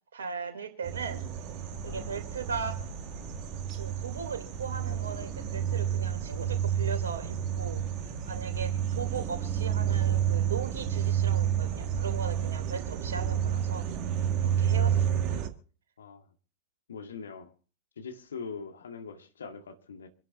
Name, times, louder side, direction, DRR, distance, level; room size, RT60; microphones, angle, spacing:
voice 1, 0.1-1.2 1.8-2.8 3.8-7.8 8.3-13.9 14.4-15.4, right 5 dB, 65° right, 3.1 m, -38 dB
sound 1, 0.8-15.5, right 9 dB, 40° right, 1.7 m, -30 dB
Thunder, 1.4-15.0, left 4 dB, 50° left, 5.1 m, -50 dB
voice 2, 16.9-17.5 18.0-20.1, left 5 dB, 70° left, 1.9 m, -42 dB
27.0 x 11.0 x 2.7 m
figure-of-eight pair, 90°, 0 cm